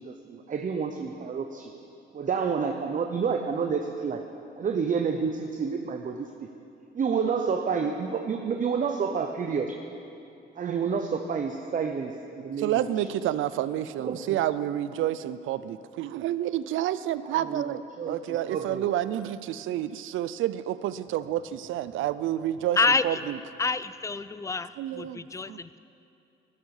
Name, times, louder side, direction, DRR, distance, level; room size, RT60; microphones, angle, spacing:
voice 1, 0.0-1.7 2.1-4.2 4.6-6.5 6.9-9.7 10.6-12.8 14.0-14.4 17.3-17.6 18.0-18.2 18.5-18.9, right 6 dB, 40° right, 5 dB, 0.8 m, -29 dB
voice 2, 12.6-22.8 23.0-23.4 24.8-25.2 25.5-25.6, right 12 dB, 80° right, 15 dB, 0.5 m, -29 dB
voice 3, 22.8-23.2 23.6-25.8, left 4 dB, 15° left, 15 dB, 0.4 m, -27 dB
13.5 x 12.5 x 4.9 m, 2.7 s
cardioid pair, 90°, 20 cm